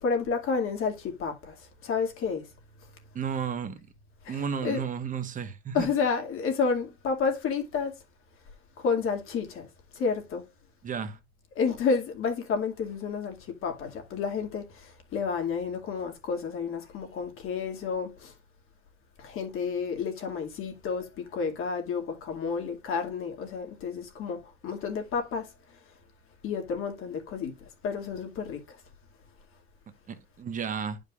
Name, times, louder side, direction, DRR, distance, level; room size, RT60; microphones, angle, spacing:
voice 1, 0.0-1.5 1.8-2.5 4.3-4.8 5.7-7.9 8.8-9.7 9.9-10.4 11.6-13.4 13.6-18.3 19.2-25.5 26.4-27.5 27.8-28.6, left 5 dB, 45° left, 2.2 m, -30 dB
voice 2, 3.1-3.8 4.3-5.9 10.8-11.2 30.1-31.0, right 7 dB, 25° right, 1.1 m, -33 dB
11.5 x 5.2 x 2.4 m
cardioid pair, 155°, 29 cm